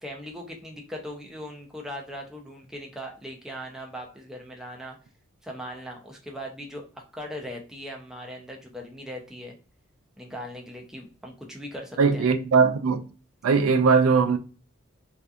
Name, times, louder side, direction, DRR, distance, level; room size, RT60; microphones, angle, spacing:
voice 1, 0.0-5.0 5.4-9.5 10.2-12.3, equal, ahead, 0.4 m, -39 dB
voice 2, 12.0-13.1 13.4-14.4, right 5 dB, 80° right, 0.3 m, -20 dB
2.7 x 2.3 x 2.3 m
head